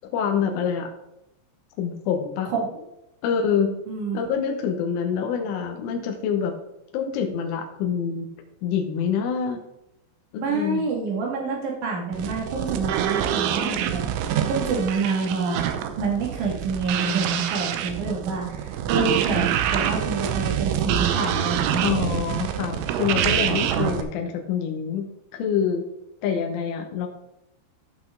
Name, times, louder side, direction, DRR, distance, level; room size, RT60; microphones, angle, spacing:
voice 1, 0.0-0.9 1.8-2.5 3.2-3.8 4.1-6.5 6.9-8.3 8.6-9.6 10.3-10.8 19.0-19.1 21.8-25.8 26.2-27.1, left 7 dB, 85° left, 2 dB, 3.5 m, -26 dB
voice 2, 3.9-4.3 10.4-15.7 16.0-21.9, right 4 dB, 50° right, -1 dB, 2.9 m, -27 dB
sound 1, 12.1-24.0, right 10 dB, 80° right, 3.1 m, -26 dB
14.5 x 6.0 x 3.8 m, 0.85 s
omnidirectional pair, 5.4 m